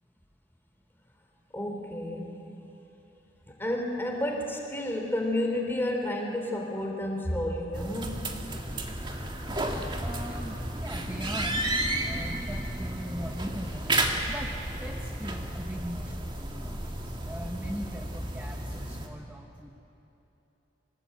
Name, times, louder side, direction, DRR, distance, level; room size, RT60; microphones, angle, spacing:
voice 1, 1.5-2.4 3.5-8.3, left 1 dB, 10° left, 2 dB, 3.3 m, -31 dB
sound 1, 7.7-19.1, right 1 dB, 25° right, 2.0 m, -32 dB
voice 2, 10.0-11.7 12.0-13.9 14.3-14.5 14.8-19.7, equal, 10° right, 1 dB, 1.1 m, -40 dB
24.5 x 20.0 x 8.6 m, 3.0 s
head